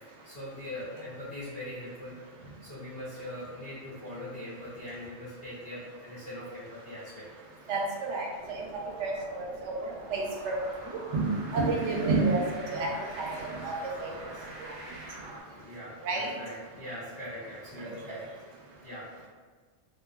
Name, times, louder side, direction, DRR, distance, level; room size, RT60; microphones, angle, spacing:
voice 1, 0.2-2.2 2.6-7.3 11.5-11.7 14.0-14.4 15.5-18.2 18.8-19.3, left 1 dB, 60° left, -13 dB, 1.2 m, -42 dB
voice 2, 7.7-8.3 8.6-8.7 9.0-10.6 11.1-12.9 13.2-14.1 14.6-14.7 16.0-16.3 18.1-18.2, right 3 dB, 90° right, -1 dB, 0.9 m, -30 dB
sound 1, 8.3-15.4, right 1 dB, 45° right, 0.7 m, -45 dB
2.9 x 2.5 x 2.3 m, 1.5 s
omnidirectional pair, 1.2 m